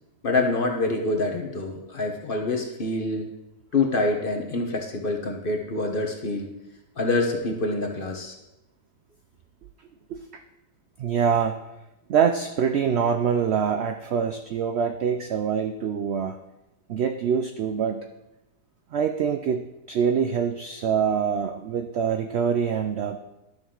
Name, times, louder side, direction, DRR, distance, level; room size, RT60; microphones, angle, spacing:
voice 1, 0.2-3.3 3.7-6.5 7.0-8.3, left 3 dB, 40° left, 2 dB, 1.1 m, -26 dB
voice 2, 10.1-10.4 11.0-11.6 12.1-16.4 16.9-18.1 18.9-23.2, right 7 dB, 85° right, 7 dB, 0.5 m, -25 dB
11.5 x 6.4 x 3.8 m, 0.94 s
omnidirectional pair, 1.7 m